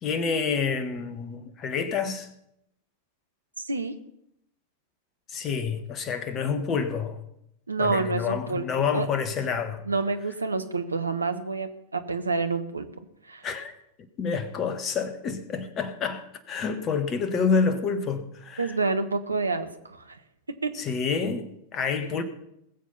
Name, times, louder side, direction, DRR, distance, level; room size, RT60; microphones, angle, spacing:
voice 1, 0.0-2.3 5.3-7.2 7.8-9.8 13.4-13.7 14.2-18.7 20.7-22.2, left 5 dB, 30° left, 1.5 m, -28 dB
voice 2, 3.6-3.9 7.7-8.6 8.9-9.1 9.9-12.9 13.2-13.5 18.6-20.2 20.6-20.7, right 3 dB, 80° right, 1.1 m, -28 dB
20.0 x 7.5 x 5.8 m
figure-of-eight pair, 90°, 0 cm